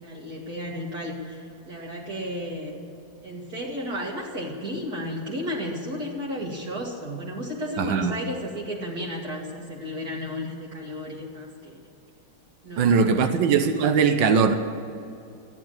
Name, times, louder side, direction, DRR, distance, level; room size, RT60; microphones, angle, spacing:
voice 1, 0.0-2.8 3.2-11.8 12.6-13.4, equal, 55° right, -5 dB, 2.4 m, -33 dB
voice 2, 7.8-8.1 12.8-14.5, right 6 dB, 90° right, 8 dB, 1.6 m, -20 dB
14.0 x 10.5 x 8.8 m, 2.6 s
omnidirectional pair, 2.0 m